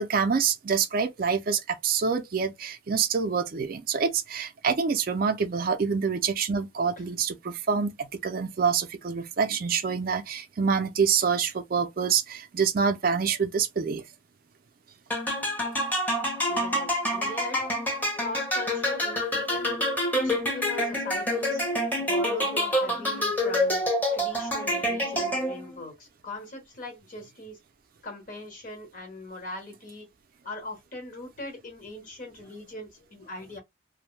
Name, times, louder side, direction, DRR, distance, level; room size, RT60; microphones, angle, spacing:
voice 1, 0.0-14.0, right 6 dB, 45° right, 0.4 m, -26 dB
sound 1, 15.1-25.8, equal, 10° left, 0.7 m, -27 dB
voice 2, 16.5-17.7 18.2-19.8 20.2-21.6 22.0-23.8 24.1-27.6 28.0-30.1 30.4-33.6, left 2 dB, 40° left, 1.1 m, -40 dB
2.6 x 2.1 x 3.1 m
head